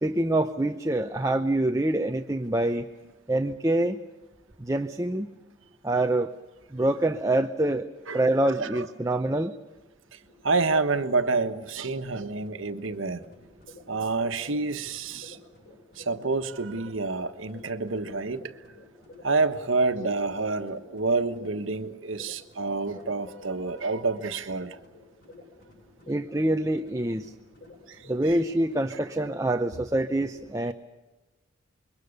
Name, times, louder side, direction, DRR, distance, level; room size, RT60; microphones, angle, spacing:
voice 1, 0.0-2.8 3.3-4.0 4.6-5.3 5.8-6.3 6.7-7.9 8.1-9.5 26.1-27.3 28.1-30.7, right 1 dB, 15° right, 0.7 m, -25 dB
sound 1, 10.3-29.7, left 2 dB, 50° left, 7.7 m, -52 dB
voice 2, 10.4-13.2 13.9-15.4 16.0-18.5 19.2-24.8 27.9-28.0 28.9-29.0, right 3 dB, 75° right, 1.4 m, -28 dB
26.5 x 22.5 x 6.6 m
head